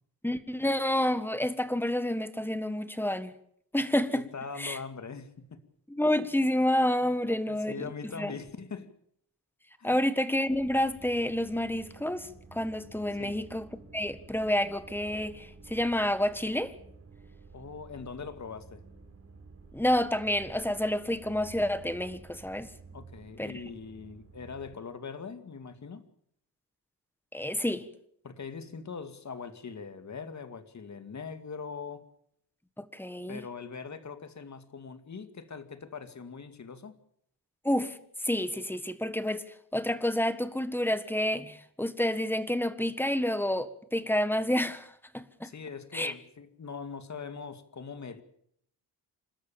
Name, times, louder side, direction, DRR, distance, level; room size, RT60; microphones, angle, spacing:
voice 1, 0.2-3.3 3.7-4.3 4.6-4.8 5.9-7.9 8.2-8.3 9.8-13.7 13.9-16.7 19.7-22.7 23.4-23.6 27.3-27.9 32.8-33.4 37.6-39.4 39.7-45.5 45.9-46.1, left 1 dB, 5° left, 1.6 m, -29 dB
voice 2, 4.1-5.6 7.3-8.9 9.8-10.0 13.2-13.4 17.5-18.8 22.9-26.0 28.2-32.1 33.3-37.0 45.4-48.2, left 5 dB, 45° left, 2.3 m, -42 dB
sound 1, 10.5-24.8, right 4 dB, 35° right, 4.2 m, -52 dB
28.5 x 13.0 x 8.8 m
cardioid pair, 105°, 41 cm